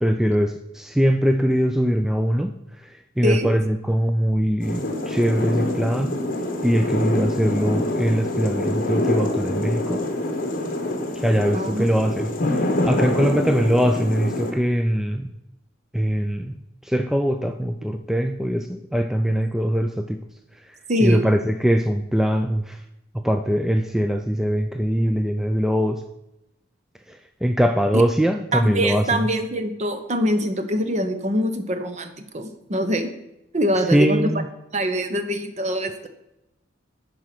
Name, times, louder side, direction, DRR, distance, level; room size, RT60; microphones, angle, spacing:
voice 1, 0.0-2.5 2.8-6.2 6.6-10.0 11.1-15.3 15.9-16.6 16.8-20.2 21.0-22.8 23.1-26.0 27.1-29.2 33.9-34.5, equal, ahead, 6 dB, 0.3 m, -22 dB
sound 1, 4.6-14.5, left 1 dB, 45° left, 1.4 m, -26 dB
voice 2, 11.5-11.9 20.9-21.3 27.9-28.0 28.5-33.1 33.5-34.3 34.7-36.1, equal, 35° right, 8 dB, 0.9 m, -24 dB
11.0 x 4.7 x 5.9 m, 0.88 s
head